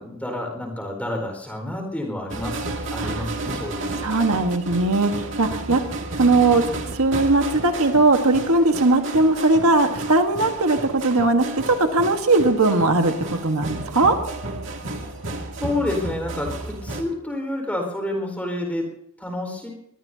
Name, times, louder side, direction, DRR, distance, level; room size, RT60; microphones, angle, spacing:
voice 1, 0.0-4.1 15.6-18.9 19.2-19.7, left 1 dB, 5° left, 2 dB, 4.5 m, -29 dB
sound 1, 2.3-17.0, right 2 dB, 55° right, 2.2 m, -32 dB
voice 2, 4.0-5.8 6.1-14.2, right 2 dB, 75° right, 5 dB, 1.4 m, -19 dB
22.5 x 20.5 x 2.8 m, 0.80 s
head